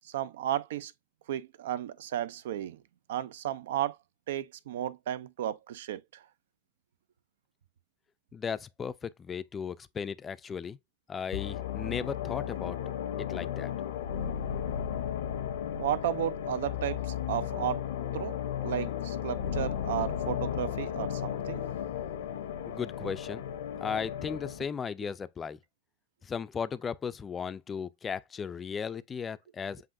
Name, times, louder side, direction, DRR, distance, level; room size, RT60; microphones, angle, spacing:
voice 1, 0.0-0.9 1.3-2.8 3.1-4.0 4.3-6.2 15.8-17.8 18.1-21.6, right 11 dB, 70° right, 0.5 m, -33 dB
voice 2, 8.3-10.8 11.1-12.8 13.2-13.7 22.7-23.5 23.8-25.6 26.2-29.8, left 6 dB, 20° left, 0.4 m, -36 dB
sound 1, 11.3-24.7, left 9 dB, 75° left, 0.7 m, -34 dB
7.4 x 2.6 x 2.6 m
hypercardioid pair, 120°, 0 cm